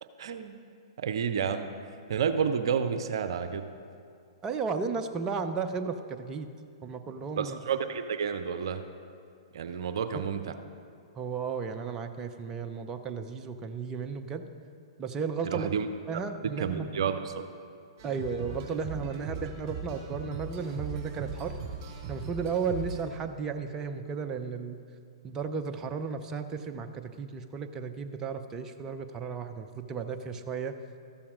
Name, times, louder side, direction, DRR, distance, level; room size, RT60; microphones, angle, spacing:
voice 1, 0.2-0.6 1.0-1.7 2.1-3.7 7.4-8.8 9.5-10.5 15.4-15.9 16.4-17.4, right 7 dB, 60° right, 8 dB, 0.6 m, -30 dB
voice 2, 4.4-6.5 6.8-7.6 10.1-10.2 11.2-14.4 15.0-15.7 16.1-16.9 18.0-21.5 22.1-24.8 25.2-30.7, right 5 dB, 20° right, 6 dB, 0.6 m, -34 dB
sound 1, 18.0-23.0, right 6 dB, 40° right, 3.2 m, -39 dB
13.5 x 7.1 x 5.1 m, 2.3 s
figure-of-eight pair, 115°, 3 cm